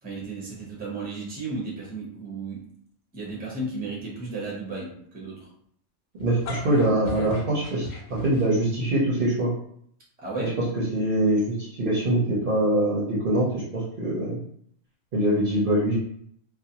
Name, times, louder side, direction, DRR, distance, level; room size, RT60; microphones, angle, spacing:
voice 1, 0.0-2.7 3.1-5.5 10.2-10.6, right 3 dB, 10° right, -4 dB, 0.5 m, -34 dB
sound 1, 6.2-8.8, left 3 dB, 80° left, 1.0 m, -37 dB
voice 2, 6.2-9.5 10.4-10.5 10.9-14.4 15.1-15.9, right 1 dB, 55° right, -6 dB, 0.7 m, -23 dB
2.4 x 2.1 x 2.8 m, 0.66 s
omnidirectional pair, 1.3 m